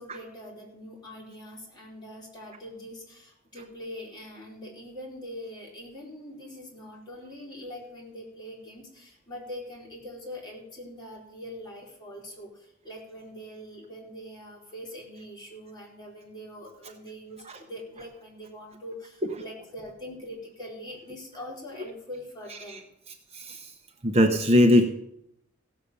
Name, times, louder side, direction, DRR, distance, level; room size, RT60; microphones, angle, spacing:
voice 1, 0.0-22.8, equal, 20° left, -4 dB, 4.3 m, -43 dB
voice 2, 23.3-23.7 24.0-24.9, left 1 dB, 30° right, 5 dB, 0.8 m, -19 dB
16.0 x 7.1 x 6.8 m, 0.77 s
head